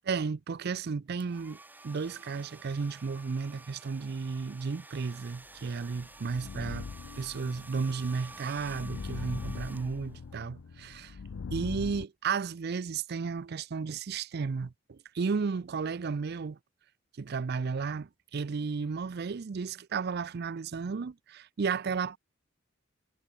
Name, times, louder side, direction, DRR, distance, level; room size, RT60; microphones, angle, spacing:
voice 1, 0.0-1.6 1.8-6.9 7.2-11.2 11.5-16.6 17.2-22.2, right 5 dB, 50° right, 0.4 m, -33 dB
sound 1, 1.2-10.3, right 2 dB, 10° right, 0.9 m, -51 dB
sound 2, 5.6-12.0, left 5 dB, 85° left, 0.5 m, -41 dB
head